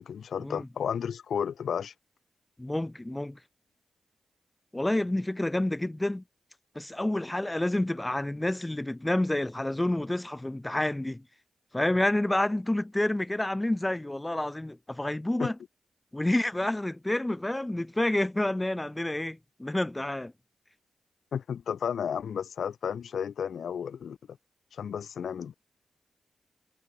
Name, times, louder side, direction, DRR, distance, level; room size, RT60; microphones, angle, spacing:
voice 1, 0.0-1.9 15.4-15.5 21.3-24.4 24.7-25.5, left 7 dB, 80° left, 6.9 m, -33 dB
voice 2, 2.6-3.4 4.7-6.2 6.8-11.2 11.7-15.6 16.1-20.3, left 1 dB, 15° left, 4.2 m, -29 dB
supercardioid pair, 45°, 0 cm